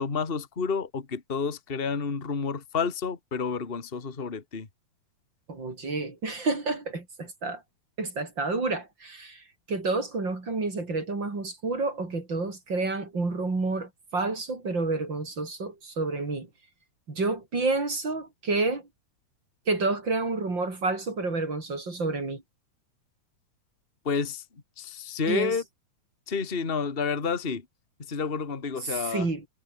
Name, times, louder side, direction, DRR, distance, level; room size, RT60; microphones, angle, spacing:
voice 1, 0.0-4.7 24.0-24.4 24.8-25.6 26.3-27.6 28.1-29.3, left 5 dB, 20° left, 2.0 m, -30 dB
voice 2, 5.5-7.6 8.0-16.5 17.1-18.8 19.7-22.4 25.3-25.6 28.8-29.5, right 3 dB, 35° right, 5.4 m, -29 dB
omnidirectional pair, 3.4 m